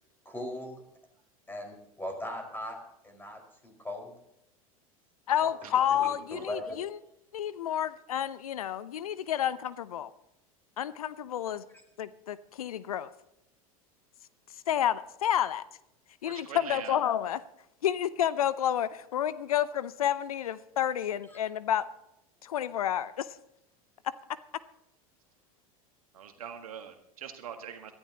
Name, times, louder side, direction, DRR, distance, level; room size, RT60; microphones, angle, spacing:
voice 1, 0.2-0.8 1.5-2.8 3.0-4.1 5.4-6.8, left 1 dB, 10° left, 3 dB, 5.1 m, -39 dB
voice 2, 5.3-7.0 7.3-10.1 10.8-11.6 12.0-13.1 14.7-15.6 16.2-17.4 17.8-21.8 22.4-23.3, left 10 dB, 75° left, 16 dB, 0.7 m, -30 dB
voice 3, 16.2-17.0 26.1-27.9, right 8 dB, 75° right, 5 dB, 1.6 m, -42 dB
23.0 x 14.5 x 3.0 m, 0.81 s
figure-of-eight pair, 80°, 19 cm